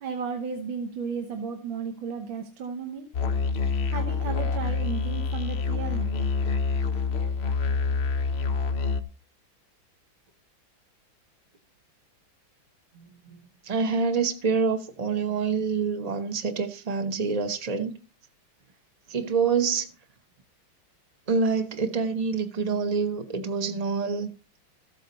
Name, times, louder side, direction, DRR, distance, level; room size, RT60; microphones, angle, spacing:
voice 1, 0.0-3.1 3.9-6.1, right 5 dB, 80° right, 1.8 m, -34 dB
Musical instrument, 3.1-9.0, left 4 dB, 65° left, 0.6 m, -27 dB
voice 2, 13.6-18.0 19.1-19.9 21.3-24.3, right 5 dB, 40° right, 0.5 m, -26 dB
14.0 x 8.3 x 4.1 m
omnidirectional pair, 2.1 m